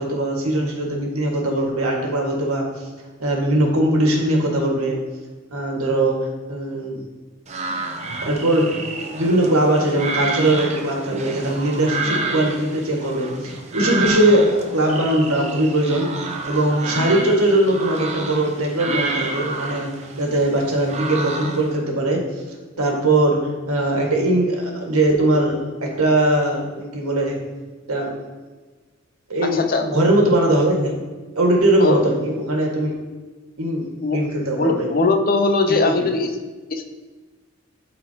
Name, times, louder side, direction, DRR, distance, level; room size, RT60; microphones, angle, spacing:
voice 1, 0.0-2.8 3.2-5.0 5.5-6.2 6.5-7.0 8.2-8.7 9.0-19.9 20.2-22.2 22.8-23.4 23.7-27.4 27.9-28.1 29.3-30.9 31.4-32.9 33.6-34.9 35.8-35.9, right 1 dB, 90° right, -1 dB, 1.7 m, -20 dB
sound 1, 7.5-21.8, right 3 dB, 30° right, 0.6 m, -29 dB
voice 2, 29.5-29.9 31.8-32.0 34.0-34.2 34.6-36.3 36.7-36.9, left 3 dB, 40° left, 6 dB, 0.6 m, -20 dB
12.0 x 4.2 x 2.8 m, 1.3 s
head